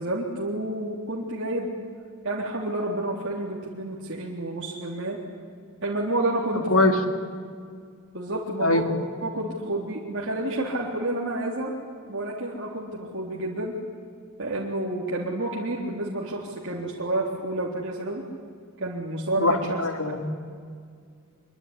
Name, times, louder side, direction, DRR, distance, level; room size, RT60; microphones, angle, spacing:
voice 1, 0.0-1.7 2.2-5.2 5.8-7.0 8.1-11.7 12.1-13.7 14.4-18.2 18.8-20.2, right 1 dB, 55° right, -4 dB, 3.6 m, -29 dB
voice 2, 19.4-20.3, left 2 dB, 65° left, 7 dB, 2.7 m, -22 dB
25.5 x 23.5 x 9.9 m, 2.1 s
head